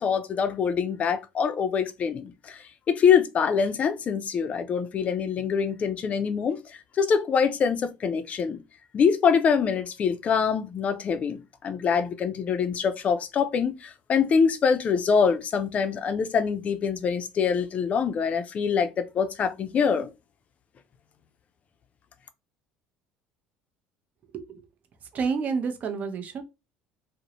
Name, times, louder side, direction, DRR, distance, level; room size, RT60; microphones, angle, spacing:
voice 1, 0.0-6.6 7.0-8.6 8.9-20.1, left 6 dB, 40° left, 0.4 m, -24 dB
voice 2, 25.1-26.4, right 5 dB, 45° right, 0.6 m, -29 dB
2.6 x 2.0 x 2.9 m
supercardioid pair, 95°, 4 cm